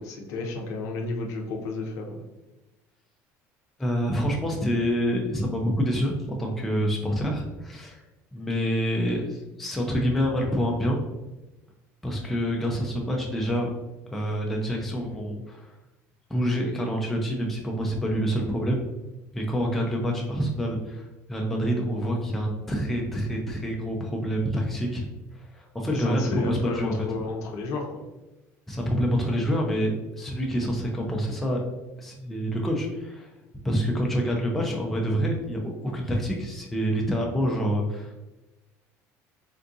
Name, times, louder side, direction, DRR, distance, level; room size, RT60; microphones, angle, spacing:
voice 1, 0.0-2.2 25.9-28.0, left 3 dB, 60° left, 1 dB, 0.6 m, -32 dB
voice 2, 3.8-8.0 8.3-11.0 12.0-13.7 14.1-15.7 16.3-18.8 19.3-25.1 25.3-26.9 28.7-29.9 30.2-31.6 32.0-33.3 33.6-38.1, equal, 5° left, -1 dB, 0.3 m, -27 dB
3.6 x 2.3 x 2.6 m, 1.1 s
cardioid pair, 165°, 6 cm